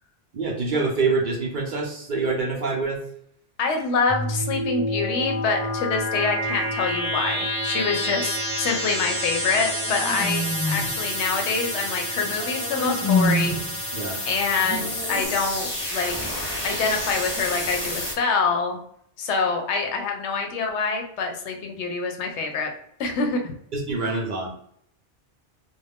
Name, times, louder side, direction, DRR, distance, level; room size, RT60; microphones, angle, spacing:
voice 1, 0.3-3.0 13.9-14.2 23.7-24.5, right 3 dB, 55° right, -1 dB, 0.6 m, -25 dB
voice 2, 3.6-13.6 14.3-16.2 16.6-18.8 19.2-22.7 23.0-23.5, left 4 dB, 80° left, 3 dB, 0.9 m, -26 dB
sound 1, 4.1-18.1, equal, 20° left, 0.8 m, -29 dB
sound 2, 9.4-11.0 12.2-13.7 14.6-15.3, left 1 dB, 15° right, 0.8 m, -27 dB
2.5 x 2.1 x 3.3 m, 0.69 s
omnidirectional pair, 1.2 m